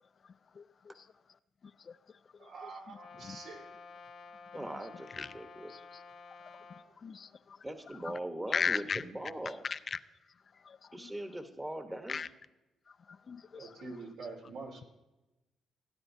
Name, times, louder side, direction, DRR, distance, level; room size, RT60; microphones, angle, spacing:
voice 1, 2.4-3.6 13.5-14.9, right 3 dB, 80° right, 0 dB, 3.1 m, -45 dB
Brass instrument, 2.9-6.9, left 4 dB, 70° left, 1.2 m, -52 dB
voice 2, 4.5-5.7 7.6-9.7 10.9-12.3, right 1 dB, 15° right, 7 dB, 1.0 m, -41 dB
voice 3, 8.5-9.0 9.7-10.0 10.7-10.8 11.0-11.1 12.1-12.3 13.3-13.7, left 6 dB, 45° left, 14 dB, 0.4 m, -34 dB
17.5 x 9.7 x 2.7 m, 1.0 s
cardioid pair, 90°, 0 cm